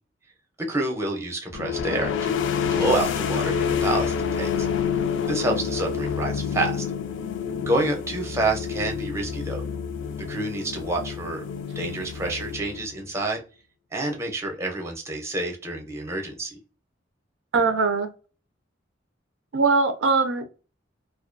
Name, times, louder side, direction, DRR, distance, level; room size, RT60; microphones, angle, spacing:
voice 1, 0.6-2.3 2.7-4.7 5.3-6.8 7.6-9.6 10.2-11.4 11.8-13.4 13.9-16.6, right 2 dB, 15° right, 1 dB, 0.5 m, -28 dB
sound 1, 1.5-13.1, left 7 dB, 70° left, 0.3 m, -28 dB
voice 2, 17.5-18.1 19.5-20.4, right 4 dB, 80° right, 8 dB, 0.4 m, -21 dB
2.3 x 2.2 x 2.5 m, 0.34 s
head